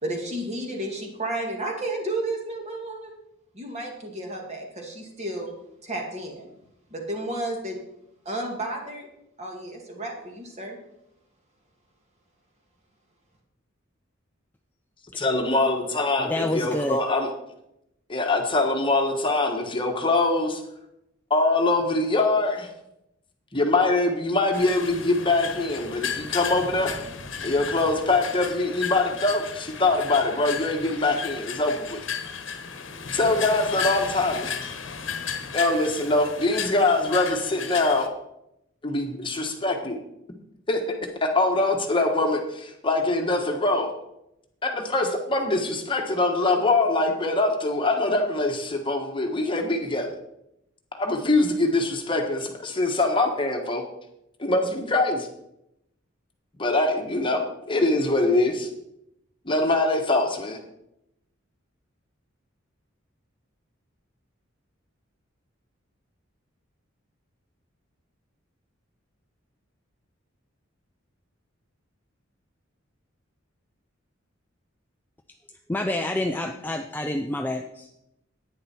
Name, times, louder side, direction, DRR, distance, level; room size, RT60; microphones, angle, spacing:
voice 1, 0.0-3.1 3.5-5.5 5.8-6.5 6.9-7.8 8.3-9.1 9.4-10.8, right 1 dB, 35° right, 1 dB, 2.1 m, -32 dB
voice 2, 15.2-17.3 18.1-20.6 21.3-22.7 23.5-27.0 27.4-32.0 33.1-34.5 35.5-38.1 38.8-40.0 40.7-40.8 41.2-43.9 44.6-50.1 51.0-53.8 54.4-55.3 56.6-57.4 57.7-58.7 59.4-60.6, left 2 dB, 25° left, 3 dB, 1.2 m, -23 dB
voice 3, 16.2-17.0 75.7-77.9, left 1 dB, 10° left, 4 dB, 0.5 m, -28 dB
sound 1, 24.5-38.1, left 7 dB, 70° left, 1.1 m, -34 dB
10.5 x 9.4 x 4.3 m, 0.82 s
head